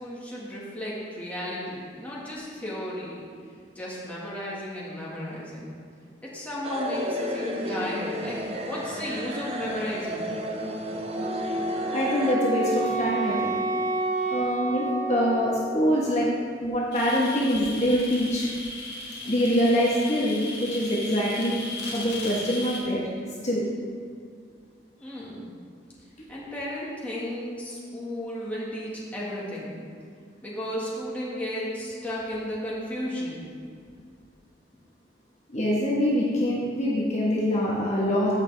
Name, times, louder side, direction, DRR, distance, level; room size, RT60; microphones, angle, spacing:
voice 1, 0.0-3.2 3.8-5.7 6.2-10.3 25.0-25.5 26.3-29.7 30.4-33.4, left 1 dB, 10° left, -7 dB, 1.8 m, -34 dB
sound 1, 6.6-12.4, equal, 30° right, 0.7 m, -32 dB
Wind instrument woodwind instrument, 11.1-15.9, right 2 dB, 50° right, 1.6 m, -29 dB
voice 2, 11.9-13.7 14.3-16.3 16.6-18.5 19.2-21.6 21.9-23.0 23.4-23.6 35.5-38.3, equal, 40° left, -5 dB, 1.3 m, -24 dB
sound 2, 16.9-22.8, left 2 dB, 60° left, 2.1 m, -37 dB
14.5 x 5.7 x 3.4 m, 2.2 s
head